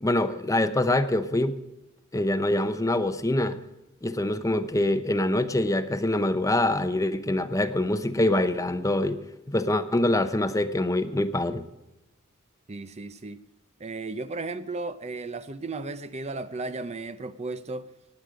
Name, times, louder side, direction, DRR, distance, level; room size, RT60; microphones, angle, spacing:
voice 1, 0.0-1.6 2.1-3.6 4.0-9.2 9.5-11.6, left 1 dB, 15° left, 0.8 m, -25 dB
voice 2, 12.7-13.4 13.8-17.9, right 3 dB, 30° right, 0.6 m, -35 dB
19.5 x 8.1 x 5.0 m
head